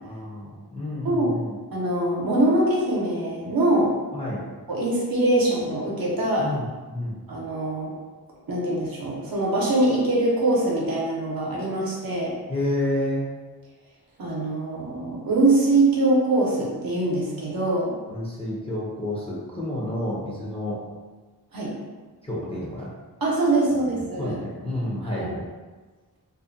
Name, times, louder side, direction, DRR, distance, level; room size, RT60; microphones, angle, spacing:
voice 1, 0.0-1.6 4.1-4.4 6.4-6.6 6.9-7.2 12.5-13.3 18.1-20.8 22.2-22.9 23.9-25.4, left 1 dB, 15° left, -7 dB, 0.5 m, -30 dB
voice 2, 1.0-1.4 1.7-3.9 4.7-6.5 7.3-7.9 8.5-12.3 14.2-18.0 21.5-21.7 23.2-24.4 25.0-25.3, right 2 dB, 65° right, -4 dB, 0.7 m, -23 dB
2.4 x 2.1 x 2.6 m, 1.3 s
wide cardioid pair, 105°, 39 cm